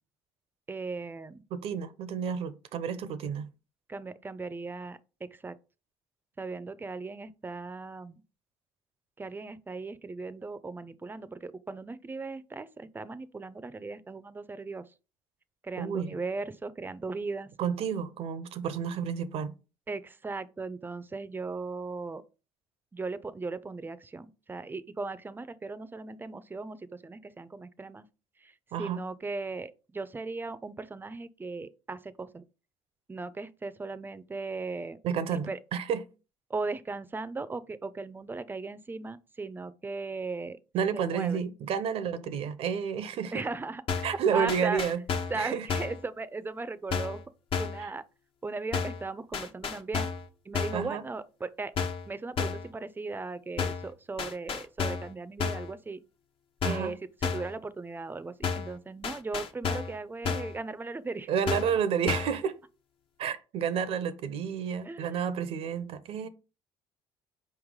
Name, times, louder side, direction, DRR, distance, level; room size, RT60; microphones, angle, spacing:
voice 1, 0.7-1.4 3.9-5.6 6.4-8.2 9.2-14.9 15.6-17.5 19.9-22.2 22.9-28.1 28.4-32.4 33.1-35.0 35.5-35.6 36.5-40.6 40.9-41.4 43.3-43.8 44.3-44.8 45.3-47.2 47.6-48.0 48.4-50.1 50.4-51.8 52.1-56.0 56.6-61.3 64.8-65.2, right 3 dB, 20° right, 0.4 m, -37 dB
voice 2, 1.5-3.5 15.8-16.2 17.6-19.5 28.7-29.0 35.0-36.0 40.7-43.5 44.0-45.0 45.3-45.7 50.7-51.0 56.6-57.0 61.3-62.6 63.2-66.3, right 7 dB, 65° right, 0.6 m, -30 dB
sound 1, 43.9-44.2 44.5-45.4 45.7-46.0 46.9-47.2 47.5-47.8 48.7-49.0 49.3-50.3 50.5-50.9 51.8-52.1 52.4-52.7 53.6-53.9 54.2-55.1 55.4-55.7 56.6-56.9 57.2-57.5 58.4-58.8 59.0-60.0 60.2-60.6 61.5-61.8 62.1-62.4, left 6 dB, 55° left, 0.8 m, -32 dB
4.6 x 3.2 x 3.6 m
supercardioid pair, 75°, 11 cm